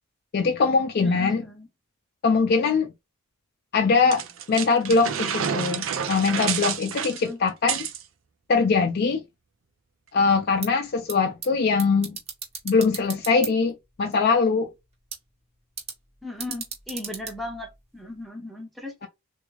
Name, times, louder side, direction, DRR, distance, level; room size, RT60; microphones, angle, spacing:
voice 1, 0.3-1.4 2.2-2.9 3.7-7.9 8.5-9.2 10.1-12.2 12.6-14.7, left 4 dB, 50° left, 0.5 m, -22 dB
voice 2, 1.0-1.7 7.1-7.4 16.2-19.1, left 2 dB, ahead, 0.7 m, -37 dB
sound 1, 4.1-8.0, right 8 dB, 75° right, 0.6 m, -29 dB
sound 2, 10.4-18.3, right 6 dB, 30° right, 1.1 m, -40 dB
3.5 x 2.5 x 3.0 m
head